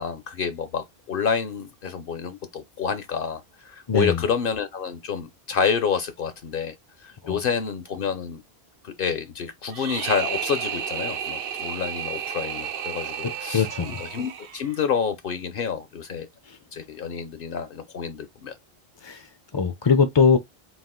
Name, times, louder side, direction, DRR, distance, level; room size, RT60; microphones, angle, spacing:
voice 1, 0.0-6.7 7.0-8.4 8.8-16.3 16.7-18.5, left 6 dB, 65° left, 0.8 m, -28 dB
voice 2, 3.9-4.2 7.2-7.4 13.2-14.0 16.5-16.6 19.0-19.3 19.5-20.4, left 5 dB, 40° left, 0.4 m, -21 dB
sound 1, 9.7-14.8, right 8 dB, 70° right, 0.8 m, -32 dB
4.1 x 2.4 x 3.7 m
omnidirectional pair, 1.0 m